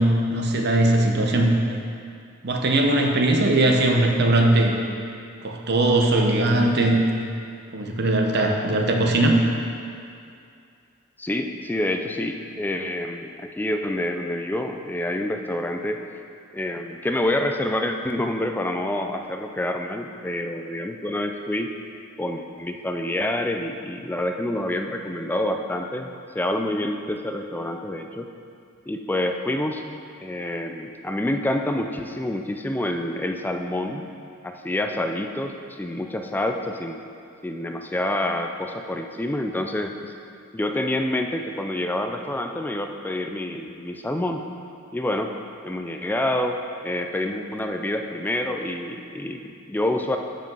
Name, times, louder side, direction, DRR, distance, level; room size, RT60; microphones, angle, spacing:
voice 1, 0.0-1.6 2.4-4.8 5.4-7.0 7.7-9.4, right 1 dB, 50° right, 2 dB, 0.8 m, -20 dB
voice 2, 11.2-16.0 16.5-21.7 22.2-26.1 26.3-28.3 28.9-29.8 30.2-34.1 34.4-37.0 37.4-40.1 40.5-44.4 44.9-45.3 45.6-46.6 46.8-50.2, left 1 dB, 10° left, 4 dB, 0.3 m, -27 dB
7.7 x 5.1 x 5.4 m, 2.4 s
head